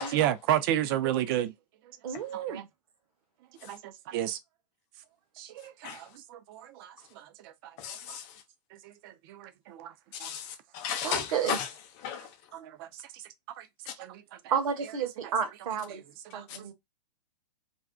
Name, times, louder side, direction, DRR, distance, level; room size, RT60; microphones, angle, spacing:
voice 1, 0.1-1.5 2.3-2.7 3.6-4.4 5.4-8.2 8.7-9.9 10.2-10.3 12.5-13.2 13.6-13.7 14.0-14.4 15.2-15.3 15.9-16.0 16.3-16.5, right 12 dB, 35° right, 0.4 m, -33 dB
voice 2, 2.0-2.6 11.0-11.6 14.5-16.0 16.3-16.7, right 7 dB, 55° right, 0.9 m, -31 dB
voice 3, 7.8-8.4 10.1-11.7 12.0-12.4 13.9-14.0 16.5-16.7, left 8 dB, 30° left, 0.6 m, -35 dB
2.5 x 2.3 x 2.3 m
figure-of-eight pair, 110°, 21 cm